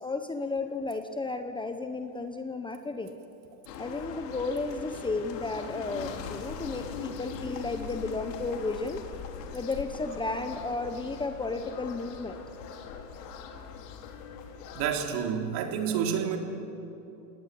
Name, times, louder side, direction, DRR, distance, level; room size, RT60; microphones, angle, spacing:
voice 1, 0.0-3.2 3.8-9.0 9.5-12.4, left 3 dB, 10° left, 7 dB, 0.9 m, -33 dB
sound 1, 3.7-15.0, left 6 dB, 75° left, 3.1 m, -41 dB
voice 2, 14.8-16.4, right 8 dB, 50° right, 3 dB, 3.5 m, -29 dB
29.0 x 18.5 x 8.4 m, 2.9 s
supercardioid pair, 130°, 49 cm